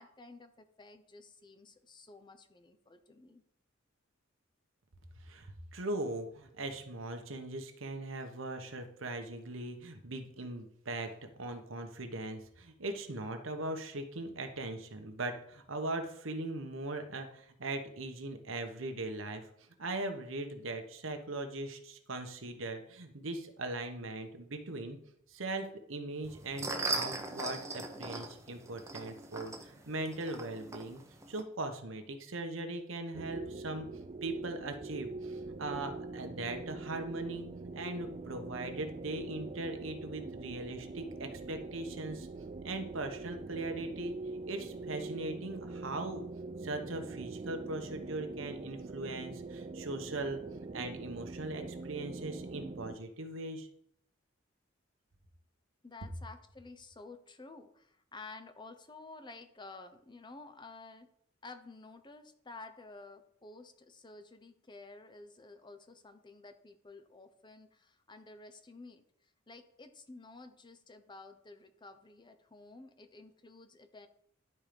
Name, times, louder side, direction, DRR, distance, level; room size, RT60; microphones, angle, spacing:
voice 1, 0.0-3.4 55.8-61.1 61.4-74.1, left 3 dB, 25° left, 9 dB, 0.7 m, -52 dB
voice 2, 5.2-19.4 19.8-25.0 25.3-31.0 31.3-33.9 34.2-42.3 42.6-44.1 44.5-46.2 46.6-53.7, right 2 dB, 85° right, 6 dB, 1.2 m, -40 dB
sound 1, 26.2-31.4, right 3 dB, 15° right, 0.8 m, -39 dB
sound 2, 33.1-53.0, right 3 dB, 30° right, 0.4 m, -43 dB
11.0 x 4.5 x 5.2 m, 0.71 s
head